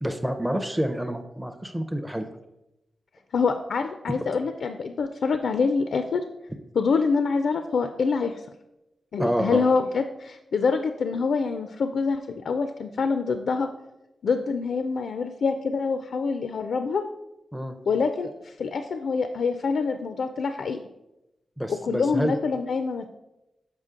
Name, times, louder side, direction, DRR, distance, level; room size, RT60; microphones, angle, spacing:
voice 1, 0.0-2.3 4.1-4.3 9.2-9.7 17.5-17.7 21.6-22.4, equal, 5° right, 6 dB, 0.5 m, -28 dB
voice 2, 3.3-6.2 6.7-8.3 9.1-13.7 14.2-17.0 17.9-20.8 21.8-23.1, left 4 dB, 75° left, 8 dB, 0.4 m, -25 dB
6.6 x 5.0 x 3.7 m, 0.94 s
wide cardioid pair, 105°, 0 cm